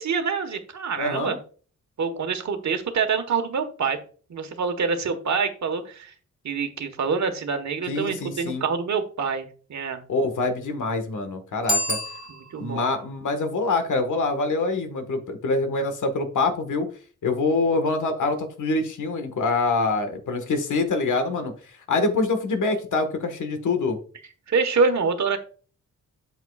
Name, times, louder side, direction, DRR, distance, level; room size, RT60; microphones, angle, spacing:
voice 1, 0.0-1.4 2.0-4.0 4.3-6.1 6.4-10.0 12.3-12.9 24.5-25.4, right 5 dB, 60° right, 6 dB, 1.4 m, -26 dB
voice 2, 1.0-1.4 7.9-8.7 10.1-12.0 12.6-16.9 17.2-21.5 21.9-24.0, left 3 dB, 70° left, 8 dB, 1.6 m, -25 dB
Bicycle bell, 11.6-12.8, left 1 dB, 30° right, 2.4 m, -28 dB
8.0 x 7.9 x 2.4 m, 0.40 s
wide cardioid pair, 125°, 31 cm